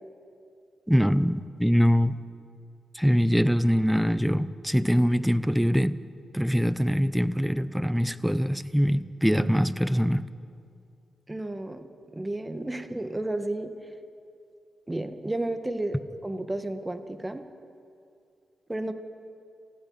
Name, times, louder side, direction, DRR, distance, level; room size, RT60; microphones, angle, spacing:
voice 1, 0.9-2.2 2.9-6.0 6.3-10.2, equal, ahead, 14 dB, 1.0 m, -23 dB
voice 2, 11.3-13.7 14.9-16.0 16.2-17.5 18.7-18.9, right 1 dB, 20° right, 8 dB, 1.9 m, -32 dB
29.0 x 15.5 x 5.9 m, 2.5 s
supercardioid pair, 45°, 0 cm